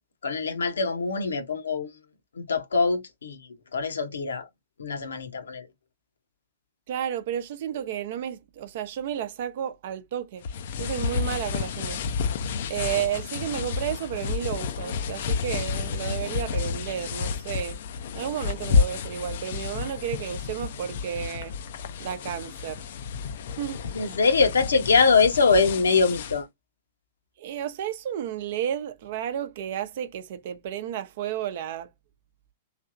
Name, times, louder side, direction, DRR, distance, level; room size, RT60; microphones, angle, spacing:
voice 1, 0.2-1.9 2.4-3.4 3.7-4.4 4.8-5.7 23.9-26.5, left 4 dB, 75° left, 0.8 m, -23 dB
voice 2, 6.9-10.4 10.8-12.0 12.7-17.8 18.1-21.5 22.0-22.8 23.6-23.8 27.4-31.9, right 10 dB, 55° right, 0.6 m, -32 dB
sound 1, 10.4-26.4, left 5 dB, 60° left, 0.4 m, -30 dB
3.3 x 2.8 x 2.5 m
figure-of-eight pair, 105°, 0 cm